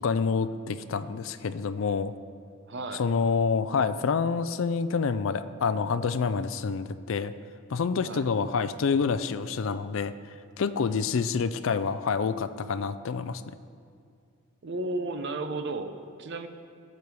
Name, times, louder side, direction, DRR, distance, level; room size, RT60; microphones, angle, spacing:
voice 1, 0.0-2.1 2.9-7.3 7.7-10.1 10.6-13.4, left 5 dB, 60° left, 12 dB, 0.4 m, -27 dB
voice 2, 2.7-3.0 8.0-8.3 10.8-11.1 14.6-16.5, right 2 dB, 50° right, 8 dB, 0.7 m, -34 dB
15.0 x 6.9 x 4.7 m, 2.3 s
head